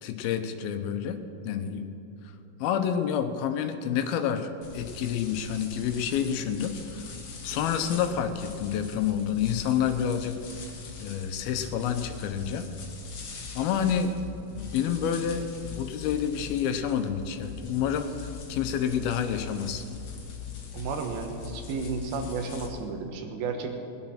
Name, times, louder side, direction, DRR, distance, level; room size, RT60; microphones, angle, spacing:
voice 1, 0.0-1.9 2.6-7.2 7.4-10.7 11.0-12.7 13.5-14.2 14.6-19.8, left 8 dB, 80° left, 8 dB, 2.7 m, -29 dB
sound 1, 4.6-22.7, left 6 dB, 50° left, 2.0 m, -42 dB
voice 2, 20.7-23.8, right 4 dB, 75° right, 4 dB, 3.0 m, -33 dB
19.5 x 9.8 x 5.8 m, 2.7 s
omnidirectional pair, 4.4 m